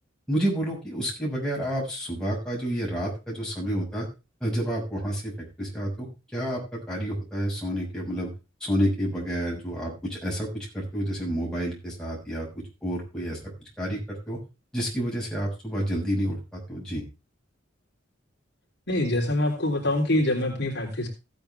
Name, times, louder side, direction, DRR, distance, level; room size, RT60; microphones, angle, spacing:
voice 1, 0.3-4.1 4.4-6.1 6.3-8.3 8.6-12.5 12.8-13.4 13.8-14.4 14.7-17.0, equal, 5° left, -3 dB, 6.2 m, -29 dB
voice 2, 18.9-21.1, left 1 dB, 60° left, -1 dB, 3.5 m, -25 dB
16.0 x 9.0 x 3.4 m, 0.28 s
head